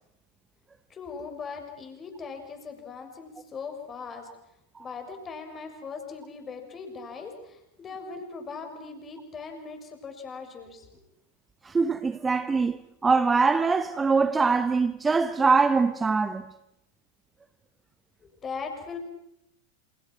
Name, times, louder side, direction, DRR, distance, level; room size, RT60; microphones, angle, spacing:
voice 1, 0.9-4.3 4.8-10.9 18.4-19.0, left 5 dB, 20° left, 6.1 m, -39 dB
voice 2, 11.6-12.8 13.0-16.5, right 4 dB, 15° right, 1.0 m, -23 dB
28.5 x 28.0 x 6.2 m
figure-of-eight pair, 90°, 0 cm